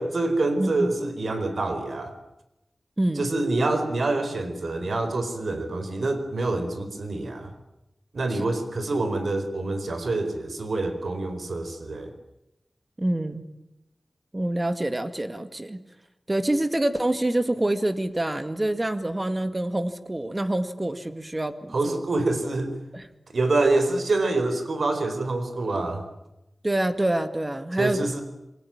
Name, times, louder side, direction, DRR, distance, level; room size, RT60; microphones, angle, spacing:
voice 1, 0.0-2.1 3.2-7.5 8.1-12.1 21.7-22.8 23.3-26.0 27.8-28.2, right 2 dB, 80° right, 8 dB, 4.4 m, -26 dB
voice 2, 0.6-0.9 3.0-3.3 8.3-8.5 13.0-13.4 14.3-15.8 16.3-22.0 22.9-23.1 26.6-28.0, right 1 dB, 25° right, 9 dB, 2.2 m, -26 dB
28.0 x 22.0 x 9.0 m, 0.91 s
wide cardioid pair, 80°, 0 cm